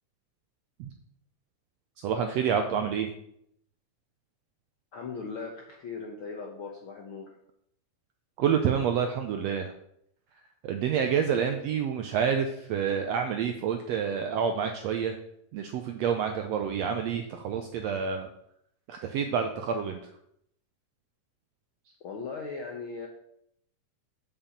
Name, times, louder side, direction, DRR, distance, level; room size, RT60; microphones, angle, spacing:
voice 1, 2.0-3.1 8.4-9.7 10.6-15.2 15.5-18.3 18.9-20.1, right 7 dB, 80° right, 5 dB, 1.5 m, -28 dB
voice 2, 4.9-7.3 22.0-23.1, left 4 dB, 70° left, 0 dB, 1.2 m, -38 dB
7.1 x 5.6 x 7.1 m, 0.73 s
omnidirectional pair, 3.7 m